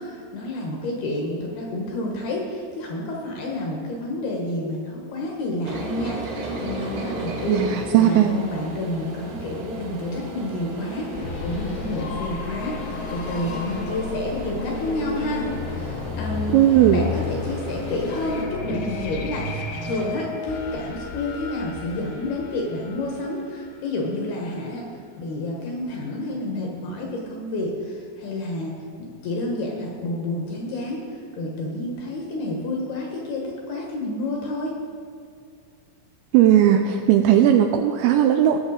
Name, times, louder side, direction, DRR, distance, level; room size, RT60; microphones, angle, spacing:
voice 1, 0.0-16.6 16.9-34.8, left 1 dB, 70° left, -1 dB, 2.6 m, -29 dB
sound 1, 5.6-18.4, right 1 dB, 65° right, 3.6 m, -35 dB
voice 2, 7.5-8.3 16.5-17.1 36.3-38.6, right 11 dB, 85° right, 5 dB, 2.6 m, -17 dB
sound 2, 11.1-23.9, left 4 dB, 85° left, 3.5 m, -32 dB
19.0 x 7.3 x 4.1 m, 2.2 s
omnidirectional pair, 5.6 m